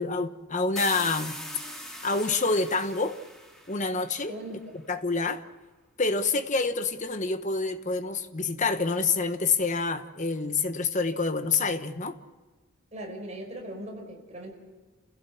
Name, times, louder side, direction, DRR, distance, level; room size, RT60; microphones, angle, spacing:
voice 1, 0.0-1.4 2.0-3.2 3.7-4.4 4.9-5.4 6.0-12.2, left 4 dB, 35° left, 1.2 m, -27 dB
sound 1, 0.8-4.4, equal, ahead, 2.9 m, -40 dB
voice 2, 4.3-4.7 12.9-14.5, right 1 dB, 35° right, 5.1 m, -39 dB
29.0 x 16.5 x 7.3 m
head